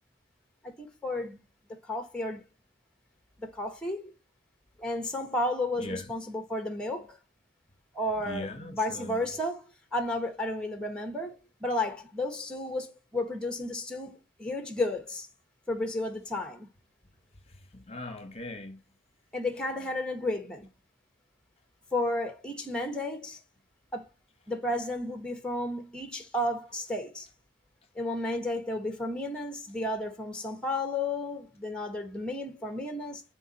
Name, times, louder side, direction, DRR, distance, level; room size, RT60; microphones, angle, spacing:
voice 1, 0.6-1.4 1.8-2.4 3.4-4.1 4.8-7.2 7.9-15.3 15.7-16.7 19.3-20.7 21.9-23.4 23.9-24.1 24.5-27.3 27.9-33.2, left 1 dB, 5° left, 1.2 m, -32 dB
voice 2, 5.8-6.1 8.2-9.2 17.5-18.8, left 2 dB, 35° left, 1.0 m, -40 dB
7.0 x 3.8 x 4.1 m
head